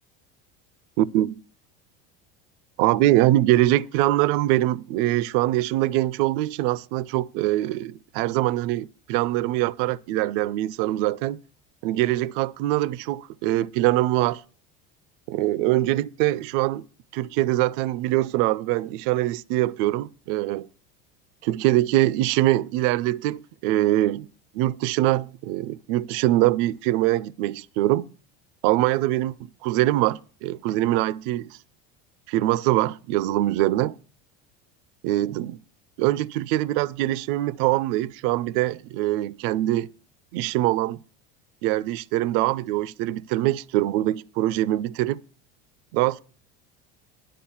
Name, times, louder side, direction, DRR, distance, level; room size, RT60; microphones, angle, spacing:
voice 1, 1.0-1.4 2.8-11.4 11.8-14.4 15.3-16.9 17.1-20.7 21.4-24.3 24.5-28.0 28.6-29.3 29.6-31.6 32.3-34.0 35.0-35.6 36.0-39.9 40.3-41.0 41.6-45.2 45.9-46.2, right 16 dB, 75° right, 0.5 m, -23 dB
10.5 x 5.1 x 7.1 m
supercardioid pair, 120°, 29 cm